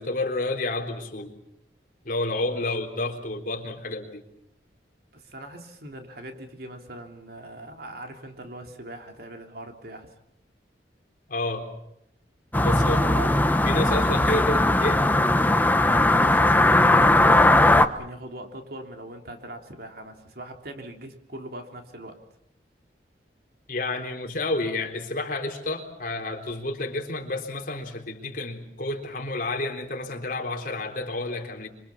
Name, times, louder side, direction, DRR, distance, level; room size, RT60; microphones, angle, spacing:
voice 1, 0.0-1.3 2.1-4.2 11.3-11.7 12.6-13.0 13.7-15.0 23.7-31.7, left 2 dB, 50° left, 3 dB, 3.8 m, -30 dB
voice 2, 5.1-10.1 12.7-13.4 13.8-14.3 15.7-22.2, right 1 dB, 60° right, 4 dB, 3.3 m, -41 dB
sound 1, 12.5-17.9, left 1 dB, 10° left, 1.0 m, -19 dB
26.0 x 24.5 x 7.2 m, 0.76 s
head